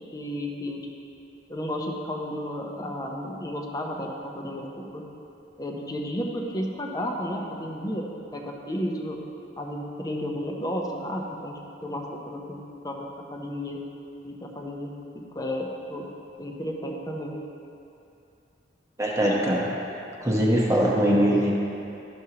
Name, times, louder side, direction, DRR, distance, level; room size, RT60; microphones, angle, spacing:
voice 1, 0.1-0.8 1.5-5.0 5.6-8.1 8.3-9.2 9.6-12.6 12.8-13.8 14.2-16.1 16.4-17.3, equal, 20° left, 0 dB, 0.8 m, -33 dB
voice 2, 19.0-19.7 20.2-21.5, equal, 20° right, -4 dB, 1.0 m, -21 dB
12.0 x 6.2 x 2.9 m, 2.7 s
head